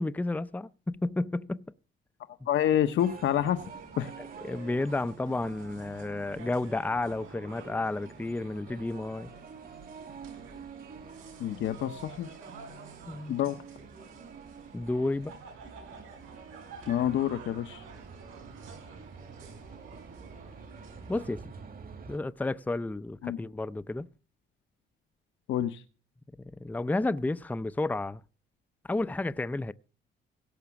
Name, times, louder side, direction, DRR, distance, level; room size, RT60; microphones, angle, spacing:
voice 1, 0.0-1.7 4.2-9.3 13.1-13.4 14.7-15.3 21.1-21.4 22.1-24.1 26.4-28.2 28.8-29.7, left 2 dB, 10° left, 0.5 m, -31 dB
voice 2, 2.5-3.6 4.0-4.1 11.4-12.3 13.3-13.6 16.9-17.8 23.2-23.4 25.5-25.8, left 11 dB, 75° left, 0.9 m, -27 dB
sound 1, 3.0-22.2, right 5 dB, 45° right, 2.0 m, -48 dB
sound 2, 3.4-21.3, right 5 dB, 90° right, 7.2 m, -51 dB
17.0 x 6.0 x 7.1 m
cardioid pair, 90°, 20 cm